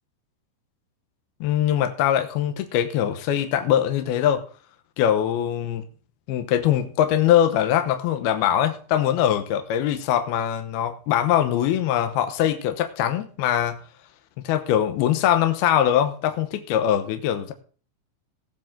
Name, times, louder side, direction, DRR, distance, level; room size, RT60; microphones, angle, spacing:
voice 1, 1.4-4.4 5.0-5.8 6.3-13.8 14.4-17.5, left 10 dB, 75° left, 8 dB, 2.5 m, -22 dB
18.0 x 7.5 x 3.8 m, 0.40 s
omnidirectional pair, 5.3 m